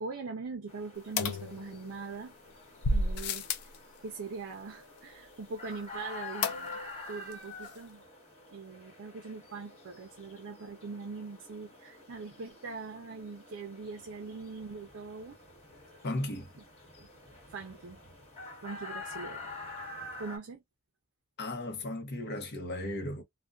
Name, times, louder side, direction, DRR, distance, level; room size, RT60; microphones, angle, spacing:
voice 1, 0.0-2.3 2.9-3.5 4.0-6.8 7.1-8.0 8.5-15.4 17.0-17.1 17.5-18.0 18.6-19.5 20.2-20.6, right 4 dB, 60° right, 0.5 m, -42 dB
sound 1, 0.7-20.4, left 2 dB, 30° left, 1.1 m, -48 dB
sound 2, 1.2-2.1 2.8-3.8 6.4-7.0 7.3-7.4 7.7-7.8, left 2 dB, 85° left, 0.4 m, -32 dB
voice 2, 16.0-16.5 21.4-23.2, left 1 dB, 50° left, 0.7 m, -35 dB
2.5 x 2.2 x 2.3 m
head